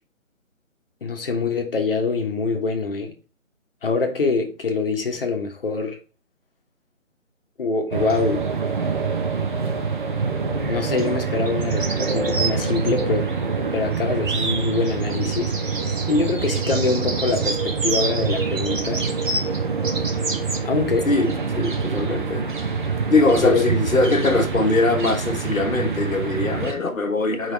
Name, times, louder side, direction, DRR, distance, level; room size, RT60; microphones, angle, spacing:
voice 1, 1.0-3.1 3.8-6.0 7.6-8.5 10.7-13.3 13.7-19.1 20.6-21.1 23.4-23.6, left 4 dB, 45° left, 1.2 m, -24 dB
sound 1, 7.9-26.7, right 5 dB, 40° right, 0.9 m, -25 dB
sound 2, 11.5-13.0 14.4-20.6, right 3 dB, 75° right, 1.5 m, -30 dB
voice 2, 21.1-22.5 23.1-27.5, left 2 dB, 85° left, 1.5 m, -21 dB
5.1 x 4.0 x 4.6 m
figure-of-eight pair, 155°, 40 cm